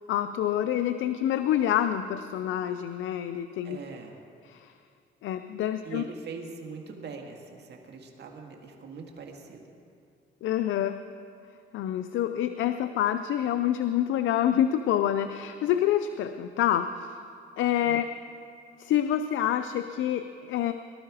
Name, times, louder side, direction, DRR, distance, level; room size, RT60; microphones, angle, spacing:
voice 1, 0.1-3.8 4.5-4.7 5.2-6.0 10.4-11.0 11.7-17.1 17.6-18.1 18.8-20.7, left 11 dB, 80° left, 9 dB, 0.5 m, -27 dB
voice 2, 3.6-4.2 5.8-9.6 17.8-18.0, right 4 dB, 60° right, 2 dB, 1.9 m, -42 dB
19.0 x 12.0 x 4.9 m, 2.4 s
cardioid pair, 90°, 20 cm